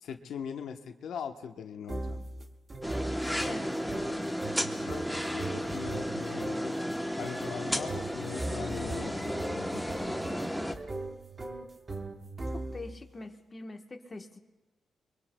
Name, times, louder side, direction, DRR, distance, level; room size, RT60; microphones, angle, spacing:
voice 1, 0.0-2.2 4.8-6.8 7.2-10.2, left 7 dB, 85° left, 5 dB, 0.9 m, -41 dB
sound 1, 1.9-13.1, right 2 dB, 30° right, 1.2 m, -39 dB
sound 2, 2.8-10.7, equal, ahead, 0.9 m, -34 dB
voice 2, 3.4-4.4 12.5-14.4, left 2 dB, 25° left, 4 dB, 1.1 m, -43 dB
24.0 x 23.0 x 2.2 m, 1.1 s
cardioid pair, 110°, 0 cm